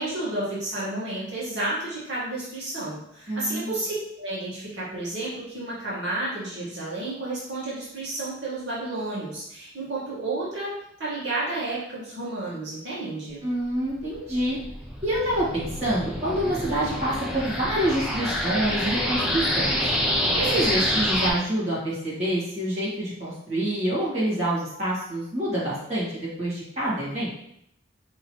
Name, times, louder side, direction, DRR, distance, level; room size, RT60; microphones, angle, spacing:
voice 1, 0.0-13.4, right 2 dB, 65° right, -8 dB, 1.4 m, -31 dB
voice 2, 3.3-3.8 13.4-14.6 15.0-19.7 20.3-27.3, right 1 dB, 35° right, -9 dB, 1.6 m, -27 dB
sound 1, 14.0-21.3, equal, 5° right, 0.4 m, -27 dB
5.4 x 2.8 x 3.0 m, 0.76 s
head